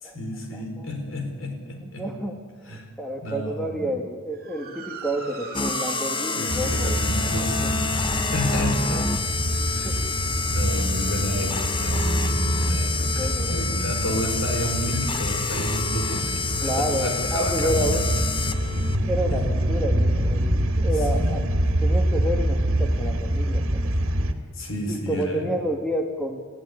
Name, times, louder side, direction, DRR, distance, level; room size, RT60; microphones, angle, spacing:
voice 1, 0.0-2.1 2.7-2.9 3.2-3.9 6.3-7.9 8.3-9.0 9.7-9.9 10.5-18.1 18.4-18.8 19.3-19.4 21.1-21.4 24.6-25.5, equal, 65° left, 4 dB, 4.6 m, -31 dB
voice 2, 0.5-0.9 1.8-7.1 7.3-7.7 8.9-9.1 9.8-10.0 11.3-11.6 13.2-13.8 16.6-18.0 19.1-21.4 21.8-23.7 24.9-26.5, equal, 5° left, 2 dB, 1.7 m, -30 dB
Motor vehicle (road) / Siren, 4.3-12.9, right 5 dB, 45° right, 2.4 m, -41 dB
sound 1, 5.5-19.0, left 4 dB, 25° left, 0.9 m, -28 dB
sound 2, 6.5-24.3, right 1 dB, 70° right, 2.1 m, -25 dB
22.5 x 15.5 x 9.6 m, 1.5 s
head